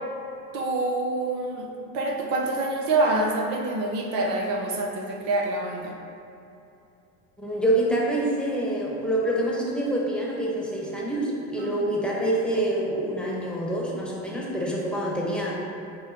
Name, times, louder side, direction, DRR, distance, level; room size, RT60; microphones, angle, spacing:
voice 1, 0.5-6.0 11.6-11.9, right 2 dB, 60° right, 0 dB, 0.9 m, -26 dB
voice 2, 7.4-15.5, right 1 dB, 5° left, -4 dB, 1.2 m, -26 dB
9.4 x 3.9 x 2.8 m, 2.7 s
supercardioid pair, 105°, 33 cm